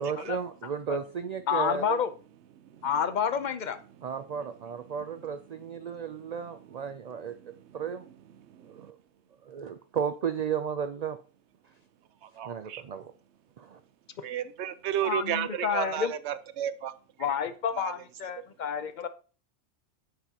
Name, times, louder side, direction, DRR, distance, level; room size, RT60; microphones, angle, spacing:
voice 1, 0.0-2.0 4.0-7.3 7.7-8.1 8.7-9.0 9.5-11.2 12.5-13.1 13.6-13.8, right 7 dB, 55° right, 0.4 m, -34 dB
voice 2, 1.5-2.1 2.8-3.8 14.2-14.3 15.0-16.1 17.2-19.1, left 7 dB, 50° left, 0.6 m, -29 dB
voice 3, 2.6-3.1 5.8-6.3 7.3-7.8 8.4-8.9 12.2-12.8 14.2-16.9 17.8-17.9, right 10 dB, 80° right, 0.9 m, -34 dB
9.0 x 6.8 x 2.8 m
omnidirectional pair, 1.2 m